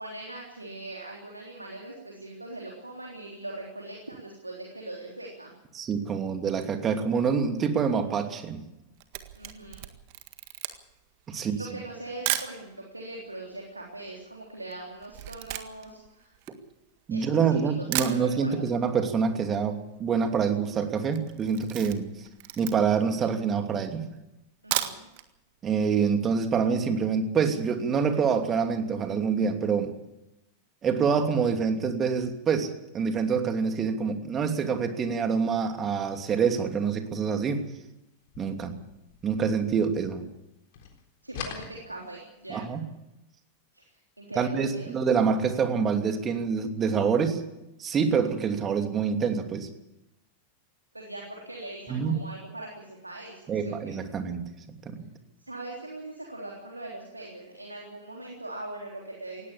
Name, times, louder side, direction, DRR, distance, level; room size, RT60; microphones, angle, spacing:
voice 1, 0.0-5.5 9.4-9.9 11.3-16.3 17.1-18.7 24.6-25.1 41.2-42.6 43.7-43.8 44.2-44.9 50.9-53.9 55.4-59.5, right 2 dB, 85° right, -1 dB, 3.6 m, -41 dB
voice 2, 5.7-8.6 11.3-11.6 17.1-22.3 22.6-24.1 25.6-29.9 30.8-37.6 38.4-38.7 39.2-40.3 42.5-42.9 44.4-47.4 47.8-49.7 51.9-52.2 53.5-54.5 54.8-55.0, right 6 dB, 25° right, 6 dB, 2.8 m, -26 dB
Camera, 8.7-12.6 13.3-13.4 13.6-17.2 17.6-17.7 17.9-18.8 19.0-19.1 19.4-19.5 19.7-20.1 20.5-20.7 21.1-23.1 23.6-23.7 24.5-25.3 25.6-25.7 26.1-26.2, right 15 dB, 45° right, 1.7 m, -34 dB
sound 1, 38.2-40.5 40.7-42.5, left 7 dB, 50° left, 3.8 m, -43 dB
19.0 x 17.0 x 8.6 m, 0.91 s
figure-of-eight pair, 90°, 0 cm